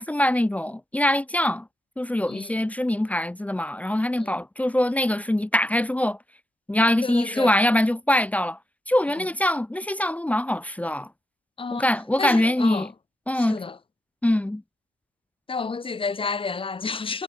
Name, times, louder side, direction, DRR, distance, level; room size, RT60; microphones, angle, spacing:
voice 1, 0.0-1.7 2.0-6.2 6.7-8.6 8.9-11.1 11.7-12.9 13.3-13.6 14.2-14.6, left 1 dB, 5° left, 0.9 m, -23 dB
voice 2, 2.3-2.6 4.2-4.4 7.0-7.5 9.1-9.3 11.6-11.9 12.2-12.9 13.3-13.8 15.5-17.2, left 4 dB, 25° left, 2.9 m, -30 dB
cardioid pair, 115°, 21 cm